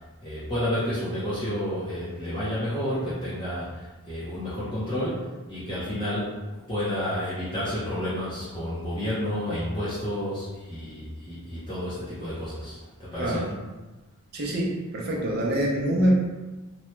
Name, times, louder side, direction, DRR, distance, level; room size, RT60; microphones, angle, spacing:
voice 1, 0.0-6.3 6.7-13.4, left 1 dB, 20° left, -11 dB, 0.6 m, -30 dB
voice 2, 13.2-13.6 14.3-16.1, equal, 45° right, -2 dB, 0.5 m, -25 dB
2.9 x 2.2 x 3.1 m, 1.2 s
head